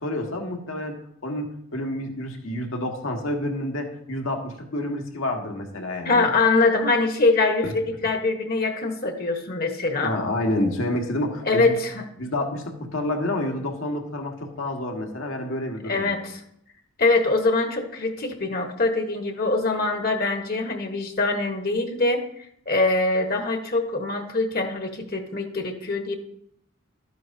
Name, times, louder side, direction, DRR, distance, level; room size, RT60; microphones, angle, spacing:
voice 1, 0.0-6.2 7.6-7.7 10.0-11.8 12.2-16.2, left 1 dB, 85° left, 2 dB, 1.7 m, -29 dB
voice 2, 6.0-10.1 11.5-12.0 15.8-16.4 17.0-22.2 22.7-26.2, left 3 dB, 50° left, 4 dB, 1.2 m, -23 dB
13.0 x 9.3 x 2.7 m, 0.72 s
head